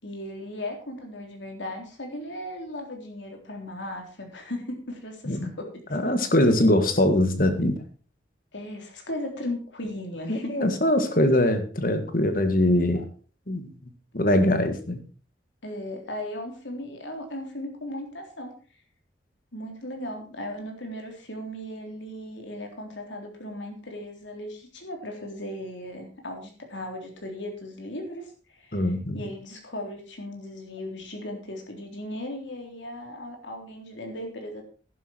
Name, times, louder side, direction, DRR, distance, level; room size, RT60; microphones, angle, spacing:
voice 1, 0.0-6.1 8.5-10.6 15.6-18.5 19.5-28.9 29.1-34.6, left 1 dB, 85° left, 3 dB, 3.7 m, -37 dB
voice 2, 5.9-7.8 10.3-13.1 13.5-13.7 14.1-15.0 28.7-29.2, left 1 dB, 50° left, 8 dB, 1.8 m, -22 dB
11.5 x 11.0 x 4.5 m, 0.38 s
head